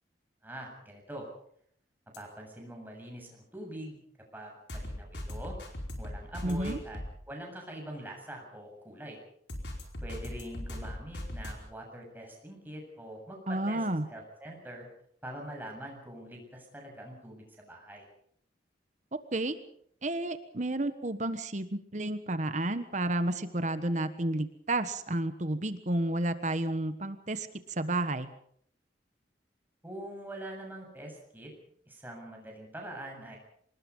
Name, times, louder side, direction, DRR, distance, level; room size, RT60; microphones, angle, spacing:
voice 1, 0.4-1.3 2.2-4.0 4.3-5.6 6.0-7.0 7.3-9.2 10.0-14.9 15.2-18.1 29.8-31.5 31.9-33.4, right 1 dB, 10° right, 0 dB, 7.5 m, -44 dB
sound 1, 2.1-2.2 4.7-7.1 9.5-11.6, left 1 dB, 85° left, 4.9 m, -38 dB
voice 2, 6.4-6.8 13.5-14.1 19.3-19.6 20.0-27.5 27.8-28.3, right 1 dB, 45° right, 11 dB, 1.4 m, -31 dB
26.0 x 20.0 x 5.5 m, 0.64 s
head